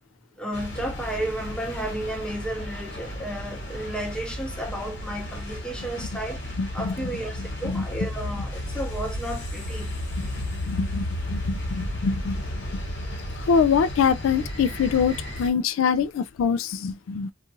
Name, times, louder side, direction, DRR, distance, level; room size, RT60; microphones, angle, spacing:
voice 1, 0.4-9.9, right 1 dB, 5° left, 0.6 m, -33 dB
sound 1, 0.5-15.5, left 1 dB, 60° left, 1.2 m, -33 dB
voice 2, 6.6-6.9 7.6-7.8 10.2-12.7 13.3-17.3, left 6 dB, 90° left, 0.3 m, -25 dB
2.9 x 2.4 x 2.6 m
head